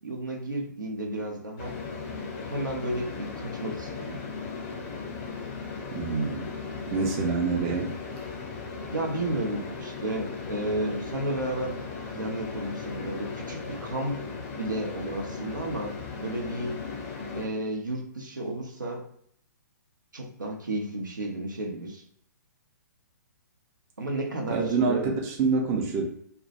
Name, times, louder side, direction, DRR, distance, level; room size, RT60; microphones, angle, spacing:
voice 1, 0.0-1.8 2.5-4.2 8.9-11.8 12.1-16.8 17.3-19.1 20.1-22.0 24.0-25.0, right 1 dB, 80° right, 0 dB, 0.7 m, -32 dB
Elevador Ambience, 1.6-17.5, left 4 dB, 25° left, 0.5 m, -37 dB
voice 2, 5.9-6.5 6.9-7.9 24.5-26.1, right 4 dB, 25° right, 0 dB, 0.5 m, -26 dB
2.2 x 2.1 x 2.8 m, 0.66 s
figure-of-eight pair, 120°, 10 cm